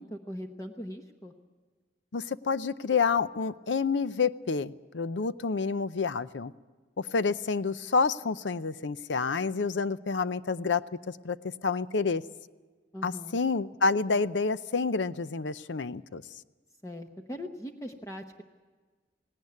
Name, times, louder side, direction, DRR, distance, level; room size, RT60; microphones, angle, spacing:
voice 1, 0.0-1.3 12.9-13.4 16.8-18.4, equal, 20° left, 4 dB, 1.0 m, -40 dB
voice 2, 2.1-6.5 7.0-12.2 13.0-16.2, left 4 dB, 80° left, 15 dB, 0.6 m, -29 dB
18.5 x 17.5 x 9.5 m, 1.4 s
head